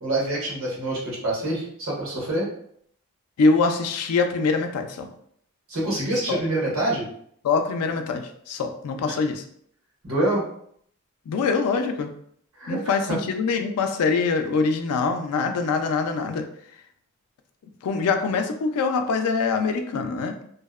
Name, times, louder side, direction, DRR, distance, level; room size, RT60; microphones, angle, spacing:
voice 1, 0.0-2.5 5.7-7.1 9.1-9.2 10.0-10.4 12.6-13.2, right 1 dB, 70° right, -5 dB, 1.1 m, -26 dB
voice 2, 3.4-5.1 6.3-6.4 7.4-9.4 11.3-12.1 12.7-16.5 17.8-20.4, left 4 dB, 90° left, 5 dB, 0.3 m, -24 dB
2.7 x 2.0 x 2.3 m, 0.66 s
head